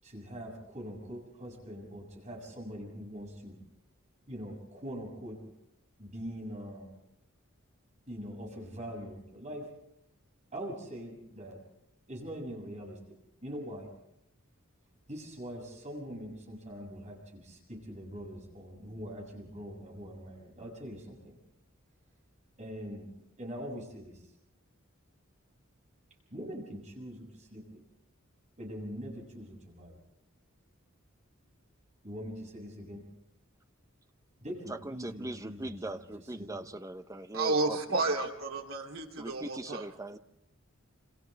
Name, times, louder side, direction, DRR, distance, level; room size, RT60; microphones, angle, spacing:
voice 1, 0.0-3.6 4.3-5.4 6.0-6.9 8.1-9.7 10.5-11.6 12.1-13.0 13.4-13.9 15.1-21.4 22.6-23.1 23.4-24.3 26.3-27.8 28.6-30.0 32.0-33.0 34.4-36.1 36.4-36.7, equal, 35° right, 0 dB, 7.2 m, -43 dB
voice 2, 34.7-38.0 39.2-40.2, right 1 dB, 15° right, 8 dB, 0.9 m, -40 dB
voice 3, 37.3-39.8, right 3 dB, 90° right, 1 dB, 3.0 m, -31 dB
29.0 x 27.0 x 3.5 m, 0.79 s
head